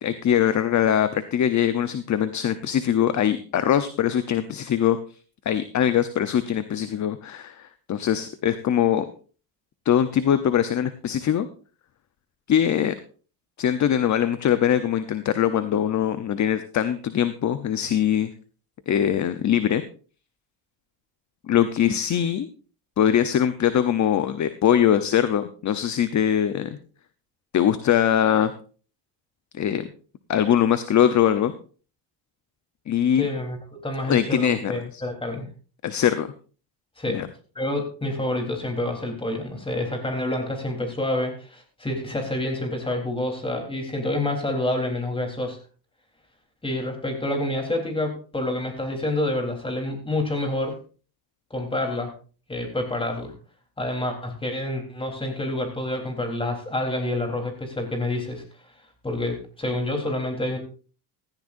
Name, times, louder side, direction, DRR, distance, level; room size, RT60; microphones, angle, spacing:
voice 1, 0.0-5.0 5.5-9.0 9.8-11.5 12.5-12.9 13.6-18.3 18.9-19.8 21.5-22.5 23.0-26.8 27.5-28.5 29.6-29.9 30.3-31.5 32.9-33.3 34.1-34.8 35.8-36.3 37.1-37.3, left 9 dB, 40° left, 11 dB, 0.8 m, -22 dB
voice 2, 33.2-35.5 37.0-37.2 37.6-45.6 46.6-50.8 51.5-52.1 52.5-53.3 53.8-58.4 59.0-60.6, left 1 dB, 10° left, 3 dB, 3.7 m, -28 dB
16.0 x 14.5 x 2.6 m, 0.38 s
cardioid pair, 135°, 45 cm